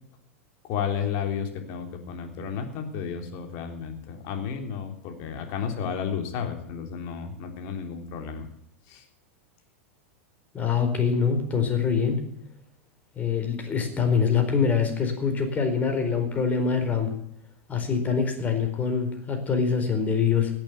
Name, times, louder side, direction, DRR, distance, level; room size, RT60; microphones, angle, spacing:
voice 1, 0.6-8.5 8.9-9.0, left 7 dB, 45° left, 5 dB, 3.5 m, -32 dB
voice 2, 10.5-12.2 13.2-17.1 17.7-20.5, left 6 dB, 25° left, 5 dB, 4.4 m, -24 dB
17.5 x 8.9 x 8.1 m, 0.73 s
figure-of-eight pair, 95°, 7 cm